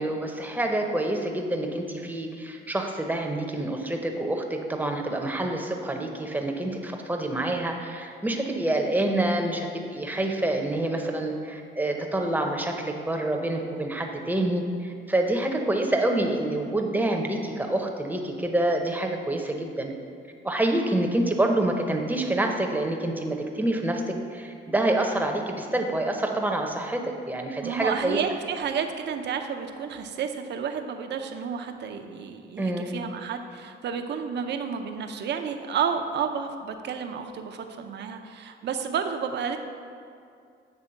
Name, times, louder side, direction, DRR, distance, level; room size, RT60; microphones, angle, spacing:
voice 1, 0.0-19.9 20.4-28.2 32.6-32.9, right 1 dB, 10° right, 2 dB, 0.8 m, -27 dB
voice 2, 27.6-39.6, right 7 dB, 60° right, 6 dB, 0.6 m, -31 dB
7.8 x 3.5 x 5.7 m, 2.3 s
cardioid pair, 90°, 20 cm